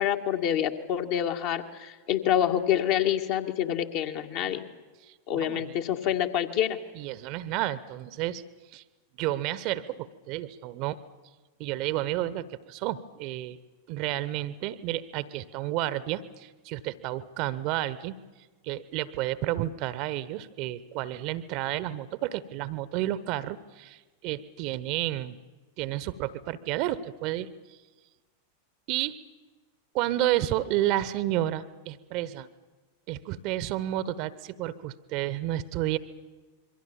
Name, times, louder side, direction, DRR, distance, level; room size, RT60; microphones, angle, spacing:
voice 1, 0.0-4.6 5.3-6.8, left 10 dB, 45° left, 4 dB, 2.0 m, -27 dB
voice 2, 5.0-5.8 6.9-8.4 8.7-8.8 9.2-11.0 11.6-13.6 13.9-18.2 18.6-25.4 25.8-27.5 28.9-29.2 29.9-32.5 33.1-36.0, right 14 dB, 45° right, 17 dB, 1.1 m, -31 dB
27.0 x 23.5 x 7.2 m, 1.3 s
figure-of-eight pair, 90°, 0 cm